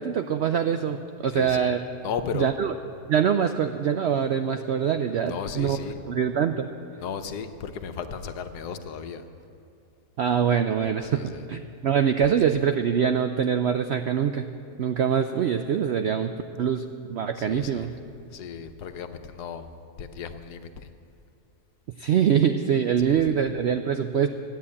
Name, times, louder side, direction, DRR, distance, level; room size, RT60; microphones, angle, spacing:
voice 1, 0.0-1.8 2.4-2.7 3.1-5.8 6.1-6.7 10.2-11.2 11.5-14.5 14.8-16.3 16.6-17.9 22.0-24.3, right 8 dB, 80° right, 8 dB, 0.6 m, -24 dB
voice 2, 1.3-1.7 2.0-2.5 5.2-6.0 7.0-9.3 11.0-11.5 12.2-12.4 17.3-19.7 20.0-20.9 23.0-23.5, left 7 dB, 85° left, 8 dB, 1.4 m, -35 dB
13.0 x 9.5 x 8.4 m, 2.5 s
omnidirectional pair, 1.7 m